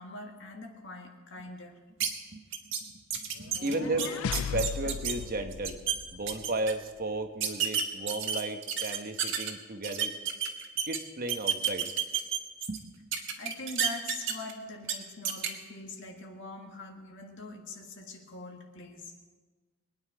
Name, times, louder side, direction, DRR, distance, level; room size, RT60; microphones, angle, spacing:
voice 1, 0.0-1.8 3.7-4.2 13.4-19.1, left 2 dB, 60° left, 2 dB, 1.8 m, -43 dB
voice 2, 2.0-4.1 4.5-5.8 6.1-10.1 10.8-11.9 12.7-12.8, right 2 dB, 45° right, 7 dB, 1.1 m, -35 dB
sound 1, 2.0-2.1 2.5-2.8 3.1-5.1 5.5-6.0 6.3-6.7 7.4-9.5 9.8-11.0 11.3-12.8 13.1-14.5 14.8-14.9 15.3-15.5, right 8 dB, 60° right, 1.6 m, -30 dB
sound 2, 3.4-6.5, left 7 dB, 80° left, 0.4 m, -36 dB
23.0 x 9.8 x 4.9 m, 1.4 s
head